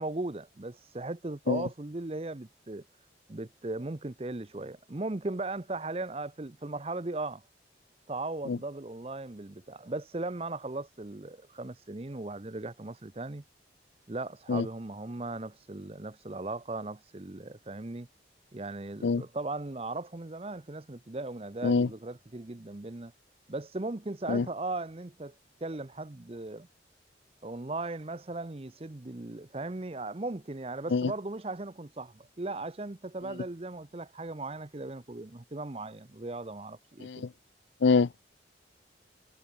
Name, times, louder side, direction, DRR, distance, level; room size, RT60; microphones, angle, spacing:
voice 1, 0.0-2.8 3.3-7.4 8.1-13.4 14.1-18.1 18.5-23.1 23.5-25.3 25.6-26.7 27.4-37.3, right 2 dB, 35° right, 0.7 m, -37 dB
voice 2, 37.8-38.3, left 4 dB, 85° left, 0.5 m, -25 dB
head